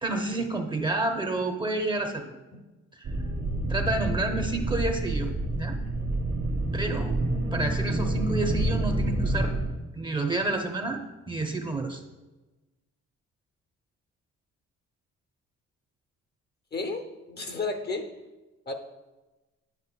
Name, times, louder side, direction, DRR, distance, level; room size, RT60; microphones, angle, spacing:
voice 1, 0.0-2.3 2.9-3.1 3.7-5.8 6.7-7.2 7.5-9.5 9.9-11.0 11.3-12.0, right 2 dB, 15° right, 4 dB, 0.7 m, -29 dB
sound 1, 3.0-9.7, right 1 dB, 80° right, 1.3 m, -28 dB
voice 2, 16.7-18.1 18.7-18.8, left 3 dB, 35° left, 6 dB, 0.7 m, -32 dB
9.6 x 5.3 x 2.2 m, 1.1 s
cardioid pair, 90°, 30 cm